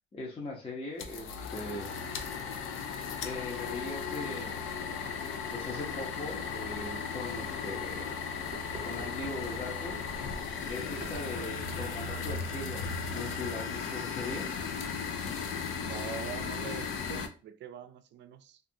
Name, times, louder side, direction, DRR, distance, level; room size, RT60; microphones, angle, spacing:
voice 1, 0.1-1.9 3.2-4.6 5.5-8.1 8.8-10.0 10.7-12.8 13.1-14.5, left 2 dB, 30° left, 0.7 m, -40 dB
sound 1, 1.0-17.3, left 6 dB, 85° left, 0.5 m, -36 dB
sound 2, 6.4-6.5 7.1-7.2 8.4-9.6 10.9-12.6, right 3 dB, 40° right, 0.9 m, -47 dB
voice 2, 15.8-18.6, right 8 dB, 65° right, 0.4 m, -44 dB
2.6 x 2.4 x 2.7 m
cardioid pair, 90°, 20 cm